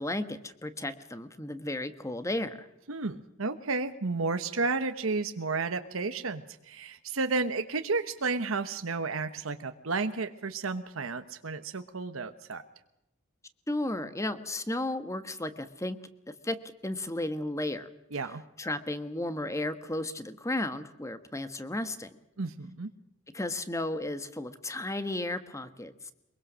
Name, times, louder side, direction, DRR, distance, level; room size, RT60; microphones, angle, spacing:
voice 1, 0.0-2.7 13.7-16.0 16.4-16.6 16.8-17.9 18.6-22.1 23.3-26.1, left 1 dB, 15° left, 11 dB, 1.3 m, -34 dB
voice 2, 2.9-12.6 18.1-18.4 22.4-22.9, right 3 dB, 90° right, 8 dB, 1.1 m, -32 dB
23.5 x 22.5 x 6.3 m, 0.88 s
head